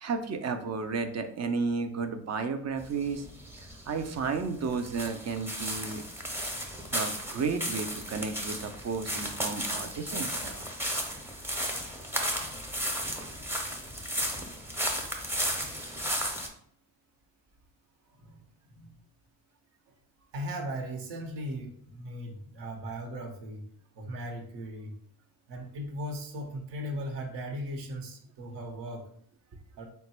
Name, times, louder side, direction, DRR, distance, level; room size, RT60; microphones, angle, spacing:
voice 1, 0.0-3.2 3.6-6.0 6.9-10.7, right 4 dB, 40° right, 8 dB, 0.6 m, -33 dB
sound 1, 2.8-16.5, equal, 5° right, 0.8 m, -34 dB
voice 2, 18.1-18.4 18.7-18.9 19.9-20.0 20.3-23.6 23.9-24.9 25.5-29.1 29.8-29.9, equal, 75° right, 2 dB, 1.1 m, -38 dB
3.8 x 2.2 x 4.3 m, 0.62 s
cardioid pair, 90°, 43 cm